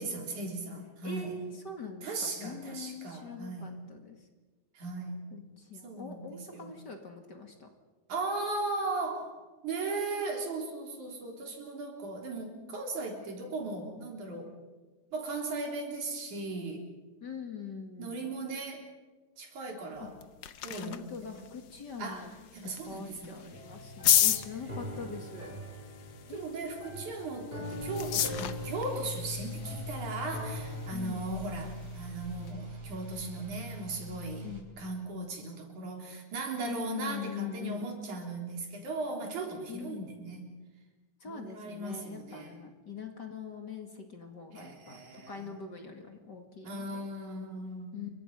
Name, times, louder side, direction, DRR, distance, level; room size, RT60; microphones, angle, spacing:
voice 1, 0.0-1.3 2.0-3.7 4.8-5.2 5.8-6.7 8.1-9.4 9.6-14.5 15.1-16.8 18.0-18.8 19.4-20.1 20.6-21.5 22.0-22.3 22.5-23.5 26.3-34.5 34.8-40.6 41.2-42.6 44.6-45.6 46.7-48.0, right 3 dB, 90° right, 1 dB, 5.1 m, -37 dB
voice 2, 1.0-4.3 5.3-7.7 17.2-18.2 20.0-20.1 20.8-22.3 22.6-25.6 26.3-27.4 30.9-31.3 34.4-34.7 36.6-37.9 39.7-40.1 41.2-47.1 47.9-48.1, left 5 dB, 40° left, 4 dB, 2.5 m, -43 dB
sound 1, 20.0-32.5, left 10 dB, 75° left, 1.0 m, -35 dB
sound 2, 23.5-30.9, equal, 15° right, 6.1 m, -44 dB
sound 3, 27.8-34.6, left 1 dB, 45° right, 4.7 m, -42 dB
29.0 x 24.0 x 5.6 m, 1.3 s
omnidirectional pair, 3.4 m